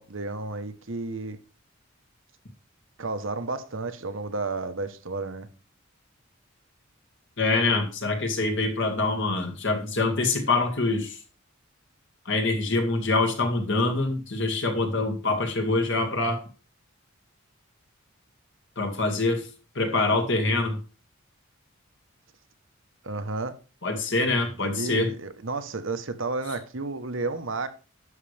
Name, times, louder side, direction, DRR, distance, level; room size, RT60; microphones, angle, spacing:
voice 1, 0.0-1.4 3.0-5.5 23.0-23.6 24.6-27.7, right 3 dB, 65° right, 1.1 m, -32 dB
voice 2, 7.4-11.2 12.3-16.4 18.8-19.5 19.8-20.8 23.8-25.1, left 3 dB, 60° left, 1.9 m, -25 dB
11.0 x 6.7 x 3.4 m
head